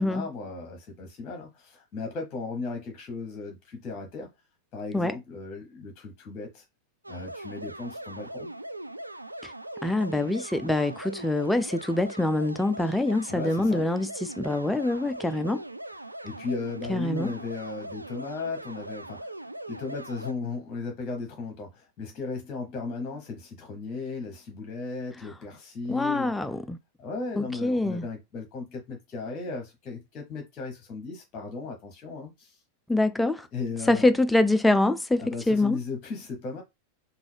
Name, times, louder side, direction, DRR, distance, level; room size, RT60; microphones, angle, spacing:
voice 1, 0.0-4.3 4.7-6.6 7.1-8.5 13.3-13.8 16.2-19.3 19.7-26.3 27.0-32.6 33.5-34.1 35.2-36.6, left 4 dB, 35° left, 1.0 m, -36 dB
sound 1, 7.0-20.3, right 1 dB, 85° right, 0.3 m, -40 dB
voice 2, 9.8-15.6 16.9-17.3 25.9-26.8 27.4-28.1 32.9-33.5 33.9-35.8, left 2 dB, 5° left, 0.3 m, -25 dB
3.7 x 2.4 x 3.3 m
figure-of-eight pair, 90°, 0 cm